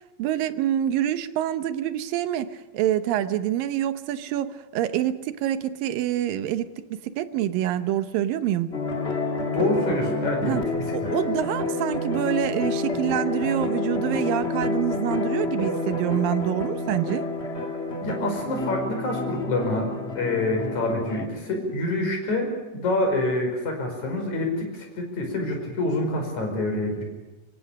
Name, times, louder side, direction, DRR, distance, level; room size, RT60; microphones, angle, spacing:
voice 1, 0.2-8.7 10.4-10.6 10.9-17.3, right 11 dB, 80° right, 11 dB, 2.7 m, -26 dB
sound 1, 8.7-21.3, left 3 dB, 25° left, 1.5 m, -29 dB
voice 2, 9.5-10.9 18.0-27.0, left 2 dB, 55° left, 3 dB, 6.6 m, -27 dB
25.5 x 24.5 x 6.5 m, 1.2 s
omnidirectional pair, 4.0 m